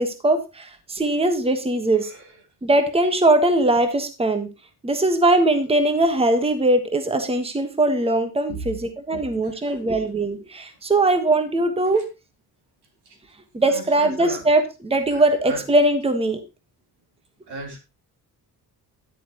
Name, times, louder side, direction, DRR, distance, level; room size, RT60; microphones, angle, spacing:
voice 1, 0.0-2.1 2.6-4.5 4.8-8.8 9.1-12.0 13.5-16.4, right 2 dB, 15° right, 8 dB, 1.3 m, -20 dB
voice 2, 2.0-2.4 8.5-8.7 9.1-9.8 11.9-12.0 13.1-13.2 13.6-14.5 15.1-15.6 17.5-17.8, right 2 dB, 85° right, 2 dB, 3.7 m, -37 dB
10.5 x 8.3 x 3.0 m, 0.27 s
cardioid pair, 110°, 39 cm